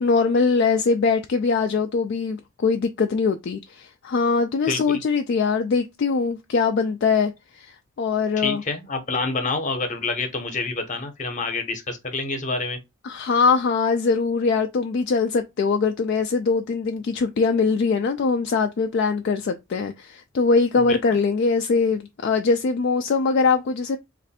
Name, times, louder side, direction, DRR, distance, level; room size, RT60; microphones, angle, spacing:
voice 1, 0.0-8.6 13.0-24.0, left 4 dB, 55° left, 0.3 m, -22 dB
voice 2, 4.7-5.0 8.4-12.8 20.9-21.0, left 3 dB, 35° left, 0.8 m, -27 dB
3.1 x 2.5 x 4.1 m
head